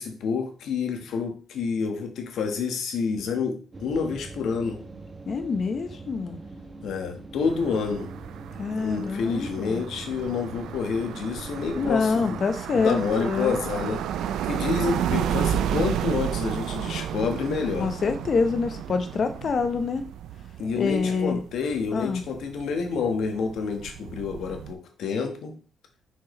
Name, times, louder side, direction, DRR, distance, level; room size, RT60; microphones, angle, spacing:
voice 1, 0.0-4.8 6.8-8.1 8.8-12.5 12.7-14.0 14.4-17.9 20.6-25.6, left 5 dB, 75° left, 5 dB, 1.4 m, -28 dB
sound 1, 3.7-12.4, right 3 dB, 30° right, 1.1 m, -43 dB
voice 2, 5.3-6.4 8.6-9.8 11.7-13.6 17.8-20.0 20.8-21.4 21.9-22.2, left 4 dB, 50° left, 8 dB, 1.0 m, -26 dB
sound 2, 7.4-24.7, right 10 dB, 80° right, 0.4 m, -32 dB
6.2 x 5.7 x 3.2 m, 0.39 s
cardioid pair, 85°, 0 cm